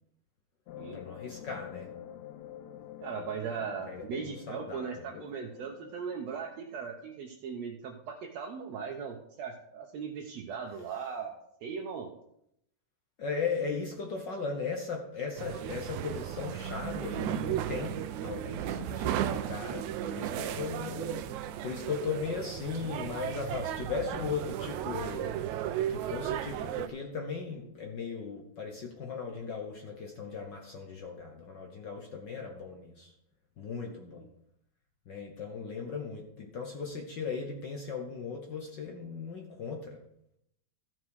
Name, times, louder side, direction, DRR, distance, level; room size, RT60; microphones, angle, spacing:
sound 1, 0.7-7.0, left 11 dB, 85° left, 2.1 m, -47 dB
voice 1, 0.9-1.9 3.9-5.2 13.2-21.3 21.6-25.3 25.9-33.1 33.6-34.3 35.1-40.0, left 5 dB, 65° left, 2 dB, 1.1 m, -37 dB
voice 2, 3.0-11.3 11.6-12.1 20.0-20.6 33.9-34.3, right 6 dB, 70° right, 1 dB, 1.9 m, -39 dB
sound 2, 15.4-26.9, right 11 dB, 85° right, 2.0 m, -35 dB
14.5 x 6.1 x 4.7 m, 0.76 s
omnidirectional pair, 3.3 m